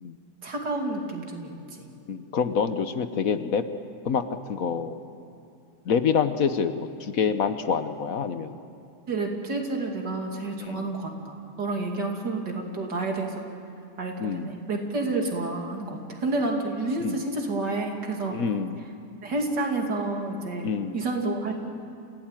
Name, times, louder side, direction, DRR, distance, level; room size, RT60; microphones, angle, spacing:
voice 1, 0.4-1.9 9.1-13.4 14.0-18.4 19.2-20.7 20.9-21.5, right 2 dB, 90° right, 2 dB, 3.2 m, -29 dB
voice 2, 2.1-3.6 4.0-4.2 4.5-5.0 5.9-8.6 10.6-10.9 14.2-14.5 17.0-17.2 18.3-18.9 20.6-21.0, left 6 dB, 60° left, 10 dB, 1.3 m, -26 dB
27.5 x 16.5 x 9.0 m, 2.6 s
omnidirectional pair, 1.8 m